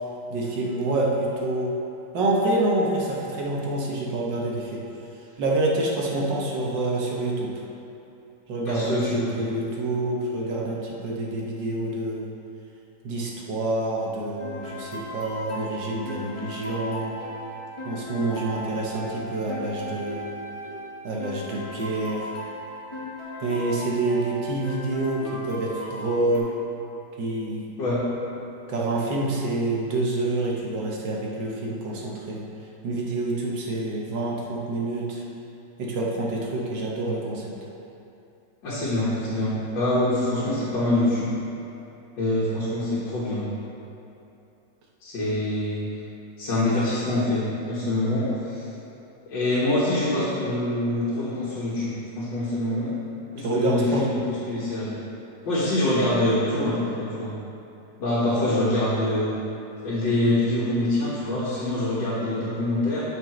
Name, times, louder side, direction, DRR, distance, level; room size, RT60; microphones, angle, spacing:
voice 1, 0.3-1.8 2.1-4.8 5.4-7.5 8.5-12.3 13.0-17.2 17.9-20.3 21.0-22.3 23.4-26.5 27.2-27.7 28.7-32.5 32.8-35.2 35.8-37.5 53.4-54.1 58.4-58.5, right 2 dB, 80° right, -3 dB, 1.8 m, -27 dB
voice 2, 8.7-9.4 27.8-28.0 38.6-41.3 42.2-43.4 45.0-45.9 46.4-48.7 49.3-53.0 53.3-54.2 54.5-54.9 55.5-57.3 58.0-59.3 59.8-63.0, left 1 dB, 90° left, -10 dB, 2.1 m, -25 dB
sound 1, 14.4-26.4, equal, 20° left, 1.1 m, -36 dB
12.5 x 5.3 x 3.1 m, 2.8 s
omnidirectional pair, 1.9 m